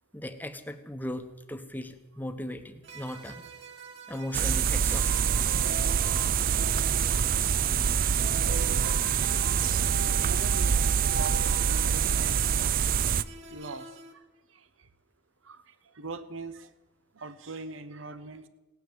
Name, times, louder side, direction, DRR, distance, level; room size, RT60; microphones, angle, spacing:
voice 1, 0.1-3.4 4.1-5.3, left 1 dB, 10° left, 8 dB, 1.0 m, -38 dB
sound 1, 2.8-14.1, right 3 dB, 65° right, 1.7 m, -42 dB
sound 2, 4.3-13.2, right 8 dB, 45° right, 0.4 m, -25 dB
voice 2, 8.2-9.4 10.2-13.1 13.5-14.2 14.5-14.7 15.4-15.6 15.9-16.7 17.1-18.5, right 3 dB, 80° right, 12 dB, 1.1 m, -43 dB
17.0 x 9.7 x 8.6 m, 1.1 s
head